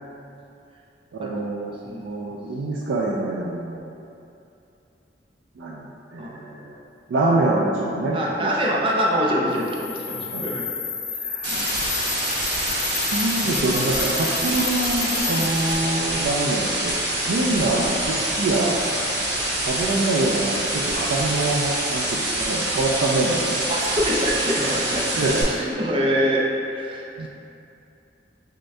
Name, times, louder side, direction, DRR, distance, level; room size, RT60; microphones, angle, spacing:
voice 1, 1.1-4.1 5.6-6.8 7.1-8.5 10.3-10.5 11.2-11.8 12.9-17.0 17.3-19.0 19.6-23.7 25.2-25.5 27.2-27.3, right 2 dB, 90° right, -3 dB, 0.4 m, -25 dB
voice 2, 1.8-2.2 6.2-6.4 8.1-10.6 11.1-11.7 15.2-15.5 17.2-17.4 23.7-26.4 26.7-27.3, equal, 30° right, -3 dB, 0.5 m, -25 dB
sound 1, 9.5-15.8, left 7 dB, 35° left, 0.5 m, -31 dB
sound 2, 11.4-25.4, right 1 dB, 65° right, 1.0 m, -26 dB
6.4 x 2.2 x 2.6 m, 2.7 s
head